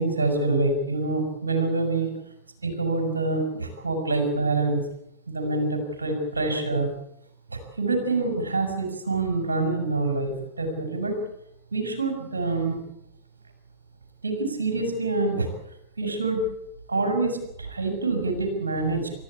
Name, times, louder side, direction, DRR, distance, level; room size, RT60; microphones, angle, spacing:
voice 1, 0.0-2.1 2.6-4.8 5.3-6.9 7.5-11.2 11.7-12.8 14.2-15.5 16.0-16.4 16.9-19.1, right 3 dB, 75° right, 5 dB, 5.3 m, -26 dB
29.0 x 14.0 x 8.3 m, 0.78 s
figure-of-eight pair, 90°, 0 cm